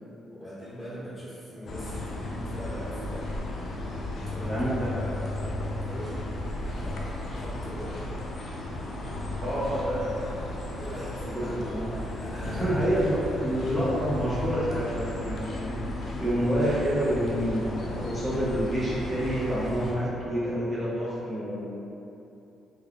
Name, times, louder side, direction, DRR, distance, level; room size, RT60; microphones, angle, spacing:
voice 1, 0.3-3.3 4.2-6.3 6.6-8.0 10.7-11.7 12.2-12.8 13.1-13.2, equal, 10° left, -11 dB, 1.4 m, -41 dB
sound 1, 1.7-19.9, left 2 dB, 50° left, 0.5 m, -34 dB
voice 2, 4.4-5.0 9.4-10.6 11.4-11.8 12.5-21.7, equal, 15° right, -11 dB, 0.6 m, -28 dB
3.3 x 2.2 x 3.5 m, 3.0 s
cardioid pair, 90°, 0 cm